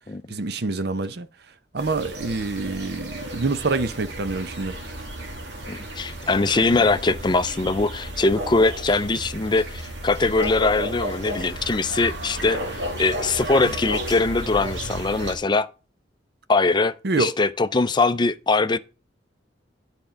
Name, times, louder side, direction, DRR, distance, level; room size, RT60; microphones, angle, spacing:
voice 1, 0.3-1.3 1.7-4.7 17.0-17.3, right 3 dB, 60° right, 0.7 m, -26 dB
sound 1, 1.8-15.4, right 1 dB, 80° right, 2.0 m, -33 dB
voice 2, 5.7-15.7 16.5-18.8, left 3 dB, 25° left, 0.5 m, -22 dB
9.4 x 4.4 x 5.0 m
head